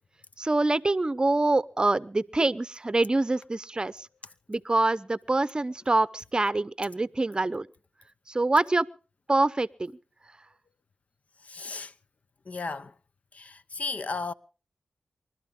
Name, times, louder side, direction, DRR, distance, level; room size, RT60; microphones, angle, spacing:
voice 1, 0.4-4.1 4.5-7.7 8.3-8.9 9.3-9.9, right 2 dB, 30° right, 0.7 m, -25 dB
voice 2, 11.4-12.0 12.4-13.0 13.3-14.3, left 4 dB, 55° left, 0.8 m, -35 dB
28.0 x 12.5 x 3.7 m
cardioid pair, 45°, 3 cm